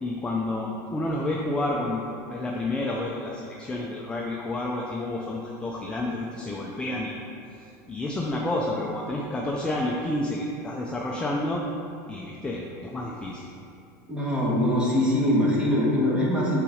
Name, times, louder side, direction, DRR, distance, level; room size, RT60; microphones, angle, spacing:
voice 1, 0.0-7.2 7.9-11.6 12.1-13.5, left 1 dB, 10° left, -2 dB, 0.4 m, -30 dB
voice 2, 14.1-16.6, left 1 dB, 10° right, -5 dB, 1.3 m, -23 dB
5.7 x 4.0 x 5.0 m, 2.6 s
supercardioid pair, 135°, 10 cm